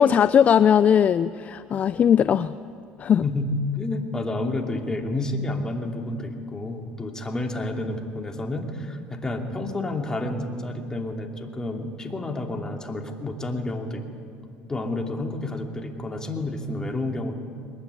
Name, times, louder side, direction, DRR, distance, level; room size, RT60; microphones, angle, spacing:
voice 1, 0.0-2.5 3.0-3.2, left 8 dB, 40° left, 14 dB, 0.5 m, -19 dB
voice 2, 3.2-14.0 14.7-17.4, left 2 dB, 15° left, 3 dB, 2.9 m, -30 dB
22.5 x 20.0 x 9.6 m, 2.4 s
supercardioid pair, 105°, 4 cm